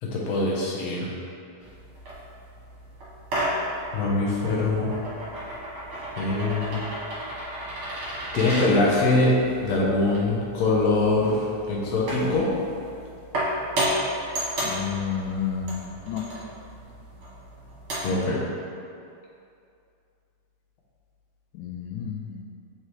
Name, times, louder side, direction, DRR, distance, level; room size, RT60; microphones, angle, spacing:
voice 1, 0.0-1.1 3.9-5.1 6.2-6.8 8.3-9.3 9.6-12.5 18.0-18.4, left 2 dB, 70° left, -5 dB, 1.7 m, -23 dB
sound 1, 1.6-18.3, right 1 dB, 55° right, 1.8 m, -33 dB
voice 2, 14.6-16.3 21.5-22.4, left 7 dB, 90° left, 3 dB, 2.1 m, -31 dB
6.3 x 4.8 x 3.2 m, 2.5 s
omnidirectional pair, 3.6 m